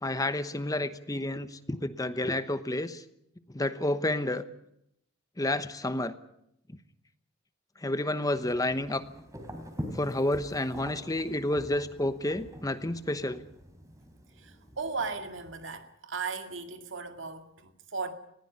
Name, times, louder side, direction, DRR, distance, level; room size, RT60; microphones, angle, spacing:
voice 1, 0.0-3.0 3.5-4.4 5.4-6.1 7.8-9.0 9.9-13.4, left 1 dB, 20° left, 1.0 m, -30 dB
sound 1, 8.3-15.5, equal, 15° right, 3.5 m, -45 dB
voice 2, 14.4-18.1, right 4 dB, 75° right, 2.3 m, -36 dB
20.0 x 15.5 x 9.5 m
head